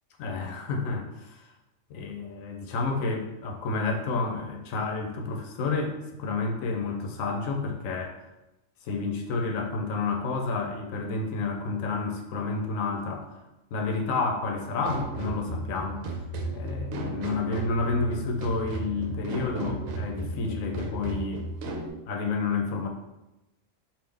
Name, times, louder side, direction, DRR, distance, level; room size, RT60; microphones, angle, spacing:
voice 1, 0.2-1.5 1.9-8.1 8.8-13.4 13.7-16.1 16.5-21.5 22.1-22.9, left 3 dB, 80° left, 3 dB, 1.0 m, -30 dB
sound 1, 14.8-21.9, right 1 dB, 80° right, 1.0 m, -34 dB
3.6 x 2.6 x 3.3 m, 0.97 s
omnidirectional pair, 1.4 m